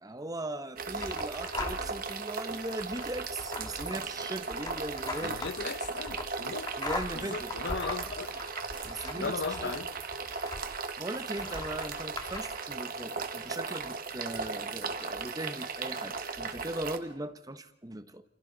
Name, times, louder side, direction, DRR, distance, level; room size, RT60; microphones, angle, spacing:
voice 1, 0.0-5.4 6.8-7.5 8.8-9.7 11.0-18.2, right 1 dB, 20° right, 0.9 m, -39 dB
sound 1, 0.8-17.0, right 4 dB, 50° right, 1.5 m, -37 dB
sound 2, 1.0-2.0 2.5-10.9 11.3-12.4, left 2 dB, 20° left, 2.1 m, -40 dB
voice 2, 5.2-6.7 7.1-8.3 8.7-9.9, left 4 dB, 60° left, 0.8 m, -37 dB
29.0 x 28.5 x 3.9 m
head